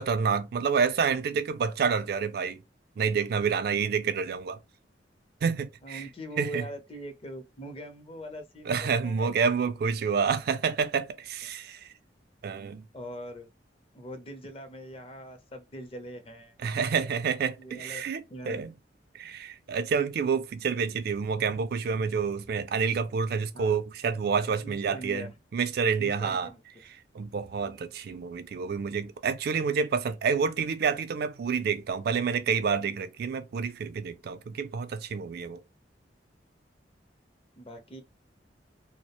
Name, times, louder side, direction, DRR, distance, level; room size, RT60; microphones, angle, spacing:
voice 1, 0.0-2.6 3.0-4.6 5.4-6.0 6.4-6.6 8.7-11.9 12.4-12.9 16.6-18.7 19.1-26.5 27.1-35.6, right 6 dB, 60° right, 0.3 m, -28 dB
voice 2, 5.8-9.3 12.9-13.5 13.9-16.7 17.6-18.0 18.3-18.6 23.5-23.8 24.6-25.3 26.0-26.6 37.6-38.0, right 1 dB, 35° left, 0.5 m, -42 dB
2.3 x 2.0 x 2.8 m
head